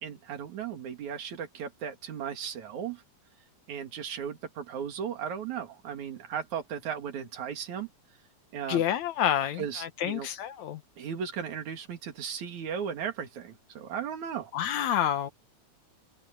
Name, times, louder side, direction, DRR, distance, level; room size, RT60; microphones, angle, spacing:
voice 1, 0.0-3.0 3.7-7.9 8.5-8.8 9.6-10.3 11.0-14.5, right 8 dB, 65° right, 3.6 m, -36 dB
voice 2, 8.7-10.8 14.5-15.3, left 10 dB, 70° left, 2.4 m, -28 dB
omnidirectional pair, 3.6 m